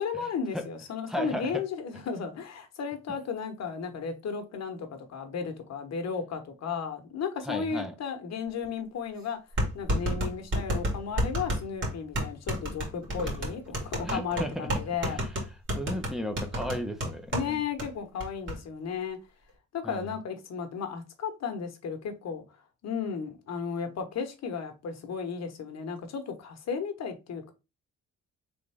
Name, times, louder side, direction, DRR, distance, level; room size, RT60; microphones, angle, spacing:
voice 1, 0.0-9.4 9.7-15.2 17.3-19.2 19.7-22.4 22.8-27.5, left 6 dB, 60° left, 1.2 m, -34 dB
voice 2, 1.1-1.5 7.5-7.9 14.0-14.7 15.0-15.3 15.8-17.6 19.8-20.1, equal, ahead, 0.9 m, -35 dB
sound 1, 8.6-8.7 9.6-17.5 17.8-17.9 18.2-18.6, equal, 40° right, 2.1 m, -30 dB
3.7 x 3.6 x 3.5 m
cardioid pair, 90°, 30 cm